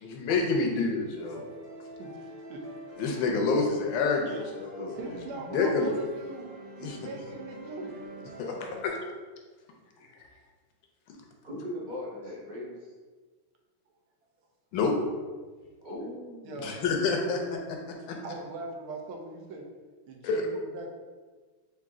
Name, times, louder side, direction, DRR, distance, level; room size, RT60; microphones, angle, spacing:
voice 1, 0.0-1.4 3.0-4.8 5.5-5.9 6.8-7.0 8.4-9.0 14.7-14.9 16.6-17.8 20.2-20.4, left 4 dB, 70° left, 1 dB, 1.3 m, -28 dB
sound 1, 1.1-8.9, equal, 60° right, 2.2 m, -45 dB
voice 2, 2.0-2.6 4.3-4.4 5.0-6.5 6.8-7.9 16.4-16.8 18.2-19.7 20.1-20.9, right 2 dB, 80° right, 1 dB, 1.5 m, -40 dB
voice 3, 11.4-12.9 15.8-16.8, left 1 dB, 35° right, -6 dB, 0.8 m, -39 dB
4.8 x 2.7 x 3.6 m, 1.4 s
omnidirectional pair, 2.3 m